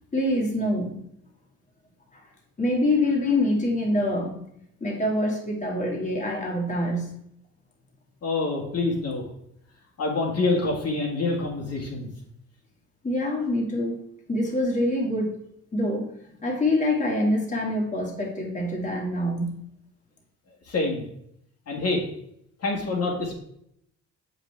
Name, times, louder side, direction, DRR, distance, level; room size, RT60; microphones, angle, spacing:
voice 1, 0.1-1.0 2.1-2.2 2.6-4.4 4.8-7.1 13.0-14.0 14.3-15.4 15.7-16.1 16.4-19.6, left 1 dB, 25° left, -1 dB, 1.9 m, -25 dB
voice 2, 8.2-9.2 10.0-12.1 20.7-21.0 21.7-22.0 22.6-23.3, left 3 dB, 55° left, -2 dB, 1.8 m, -26 dB
7.2 x 5.4 x 3.3 m, 0.73 s
cardioid pair, 90°, 30 cm